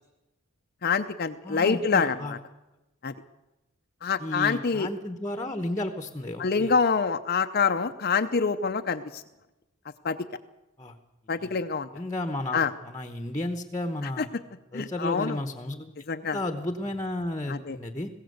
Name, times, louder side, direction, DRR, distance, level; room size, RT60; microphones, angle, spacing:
voice 1, 0.8-2.4 3.0-3.1 4.0-4.9 6.4-9.2 10.0-10.2 11.3-11.9 12.5-12.7 14.2-14.3 14.7-15.4 16.1-16.4 17.5-17.8, left 5 dB, 45° left, 7 dB, 0.6 m, -26 dB
voice 2, 1.4-2.3 4.2-6.7 10.8-10.9 11.4-11.6 11.9-14.3 14.7-15.9 16.3-18.1, left 1 dB, 15° left, 7 dB, 1.1 m, -33 dB
21.0 x 16.0 x 7.9 m, 1.0 s
head